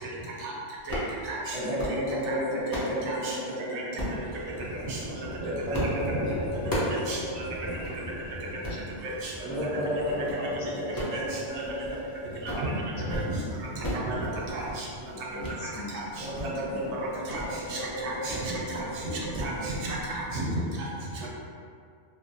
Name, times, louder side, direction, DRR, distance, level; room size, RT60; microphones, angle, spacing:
sound 1, 0.8-1.1 1.6-2.0 2.4-3.0 4.0-4.2 4.8-5.2 5.7-6.0 6.3-7.0 7.4-7.5 7.8-7.9 8.5-8.8 9.3-9.6 10.0-10.4 10.8-12.0 12.3-12.7 13.0-13.3 13.5-14.1 14.4-14.8 15.4-15.6 16.0-16.5 16.8-16.9 17.3-17.6 18.3-18.5 18.8-19.0 19.3-19.5, equal, 35° left, 0.3 m, -34 dB
voice 1, 1.5-4.6 5.3-7.7 9.4-12.5 13.4-13.5 13.8-13.9 14.7-14.8 16.2-19.7, equal, ahead, -13 dB, 0.6 m, -34 dB
voice 2, 3.1-3.4 3.7-3.8 4.9-5.5 6.1-6.2 7.1-7.2 9.0-9.3 11.1-11.2 11.5-11.6 12.6-12.7 13.1-13.2 13.8-14.2 14.5-14.8 15.9-16.0 17.3-17.4 17.7-18.8 19.4-20.5, right 2 dB, 85° right, -3 dB, 0.9 m, -34 dB
sound 2, 4.0-20.5, equal, 45° right, 0.5 m, -43 dB
voice 3, 9.7-10.9 11.1-11.3 12.4-12.7 14.2-14.3 15.1-16.3 16.7-17.5, left 1 dB, 65° left, -5 dB, 0.7 m, -41 dB
2.6 x 2.0 x 2.6 m, 2.3 s
omnidirectional pair, 1.2 m